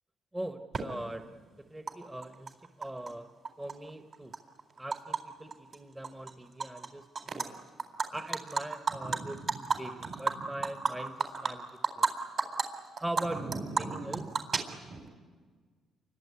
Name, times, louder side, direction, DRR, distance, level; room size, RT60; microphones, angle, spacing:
voice 1, 0.3-1.3 1.7-3.3 3.6-4.3 4.8-7.1 7.3-7.5 8.1-9.5 9.8-11.7 12.0-12.1 13.0-14.3, right 1 dB, 15° right, 6 dB, 1.4 m, -41 dB
Animal, 0.7-0.8 1.9-2.0 2.2-3.1 3.4-5.2 5.5-5.7 6.0-6.9 7.1-7.5 7.8-12.1 12.4-12.6 13.0-15.1, right 4 dB, 50° right, 4.0 m, -32 dB
29.5 x 24.0 x 8.5 m, 1.5 s
cardioid pair, 90°, 0 cm